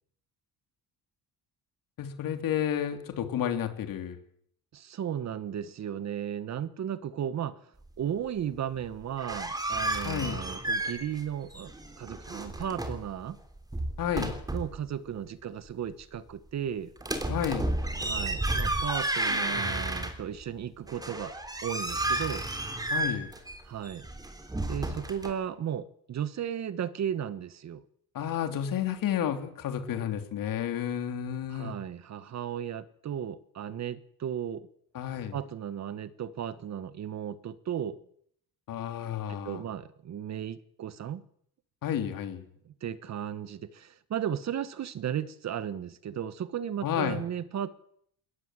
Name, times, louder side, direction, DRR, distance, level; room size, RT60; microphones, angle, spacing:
voice 1, 2.0-4.2 10.0-10.4 14.0-14.3 17.3-17.7 22.9-23.3 28.1-31.7 34.9-35.4 38.7-39.6 41.8-42.4 46.8-47.2, left 9 dB, 60° left, 7 dB, 3.3 m, -31 dB
voice 2, 4.7-7.6 8.0-13.4 14.5-16.9 18.0-21.3 21.6-22.5 23.7-24.1 24.7-27.8 31.5-34.7 35.3-38.0 39.3-41.2 42.6-47.7, right 9 dB, 45° right, 15 dB, 1.3 m, -35 dB
sound 1, 9.0-11.3 11.5-13.1 13.6-14.8 17.0-20.4 20.9-25.3, right 1 dB, 10° right, 3.3 m, -32 dB
21.0 x 18.5 x 7.6 m, 0.66 s
cardioid pair, 140°, 37 cm